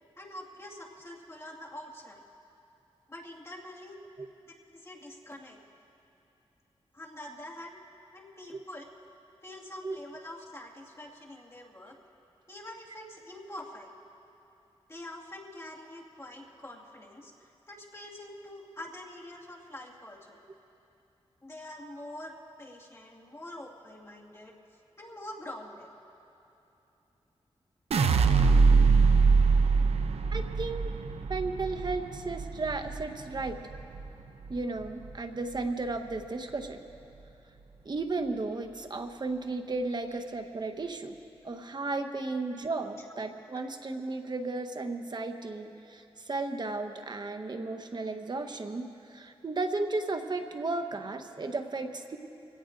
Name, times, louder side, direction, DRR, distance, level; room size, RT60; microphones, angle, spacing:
voice 1, 0.2-2.2 3.1-4.0 4.7-5.6 6.9-7.8 8.1-8.8 9.4-12.0 12.5-13.9 14.9-17.3 17.7-20.4 21.4-24.6 25.0-25.9 40.1-40.2 43.0-43.1, left 1 dB, 25° left, -2 dB, 2.0 m, -45 dB
sound 1, 27.9-34.1 34.5-35.1, right 4 dB, 75° right, 0.6 m, -24 dB
voice 2, 30.3-30.9 31.3-33.6 34.5-36.8 37.8-41.2 41.4-52.2, right 3 dB, 45° right, 6 dB, 1.1 m, -34 dB
25.0 x 17.5 x 2.6 m, 2.9 s
cardioid pair, 60°, 10 cm